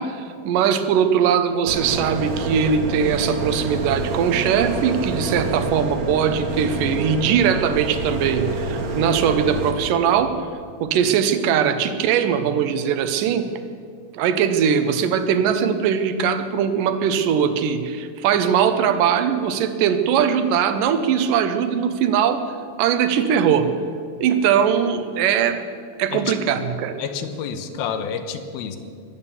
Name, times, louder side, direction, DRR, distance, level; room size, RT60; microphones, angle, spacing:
voice 1, 0.0-10.3 10.8-13.5 14.2-22.4 22.8-23.7 24.2-25.6 26.0-27.0, right 8 dB, 70° right, 9 dB, 2.3 m, -20 dB
sound 1, 1.7-9.7, right 2 dB, 55° right, 2.5 m, -27 dB
voice 2, 27.0-28.8, left 7 dB, 80° left, 8 dB, 2.9 m, -29 dB
22.5 x 8.8 x 7.2 m, 2.4 s
omnidirectional pair, 4.4 m